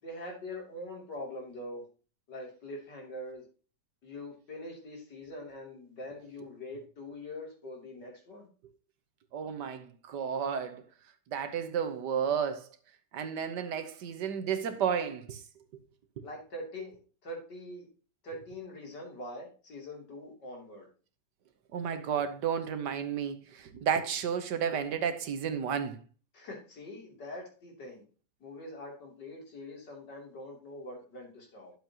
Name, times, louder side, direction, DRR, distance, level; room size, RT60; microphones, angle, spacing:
voice 1, 0.0-1.9 2.3-3.4 4.0-8.5 16.2-17.9 18.2-20.9 26.3-28.0 28.4-31.7, left 1 dB, 90° left, 3.6 m, -43 dB
voice 2, 9.3-10.8 11.3-12.7 13.1-15.4 21.7-26.0, right 7 dB, 80° right, 1.7 m, -32 dB
11.5 x 7.4 x 2.9 m
omnidirectional pair, 1.8 m